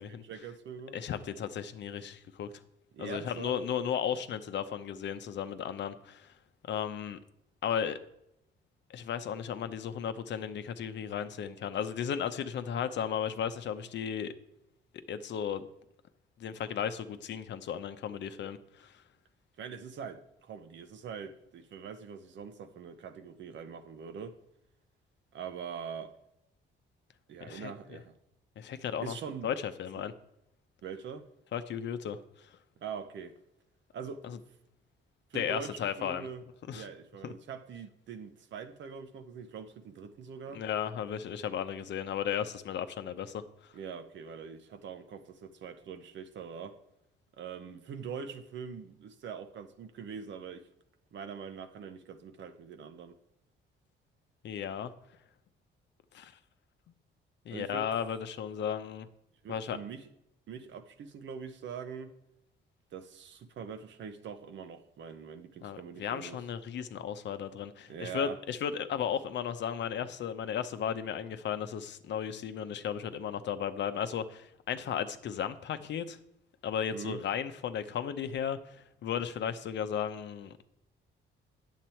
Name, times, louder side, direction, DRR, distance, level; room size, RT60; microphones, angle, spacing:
voice 1, 0.0-1.0 2.9-3.6 19.6-24.4 25.3-26.1 27.3-28.2 29.0-29.5 30.0-30.1 30.8-31.3 32.8-33.4 33.9-34.2 35.3-36.4 36.7-40.6 43.7-46.8 47.4-50.7 51.1-53.2 57.5-57.9 59.4-60.1 60.5-62.2 62.9-66.4 67.9-68.4 76.9-77.2, right 6 dB, 65° right, 0.9 m, -43 dB
voice 2, 0.9-2.5 3.0-6.3 6.6-7.2 7.6-8.0 8.9-14.3 15.1-15.7 16.4-19.0 27.4-27.7 28.6-29.2 29.4-30.1 31.5-32.2 34.2-34.4 35.3-36.3 36.7-36.9 37.2-37.3 40.5-43.4 54.4-54.9 56.1-56.3 57.5-59.1 59.5-59.8 65.6-76.2 76.6-80.5, left 8 dB, 65° left, 0.7 m, -35 dB
9.3 x 7.4 x 4.4 m
cardioid pair, 90°, 20 cm